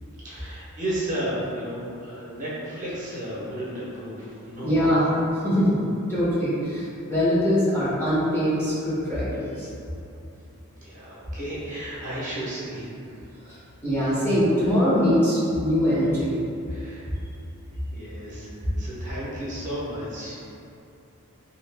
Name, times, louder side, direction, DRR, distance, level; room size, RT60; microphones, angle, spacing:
voice 1, 0.2-5.1 10.8-13.2 16.7-17.1 17.9-20.4, right 1 dB, 35° right, -8 dB, 0.8 m, -33 dB
voice 2, 4.6-5.1 5.4-5.8 6.1-9.7 13.4-13.6 13.8-16.3, equal, 10° left, -11 dB, 0.7 m, -22 dB
2.7 x 2.4 x 3.3 m, 2.7 s
head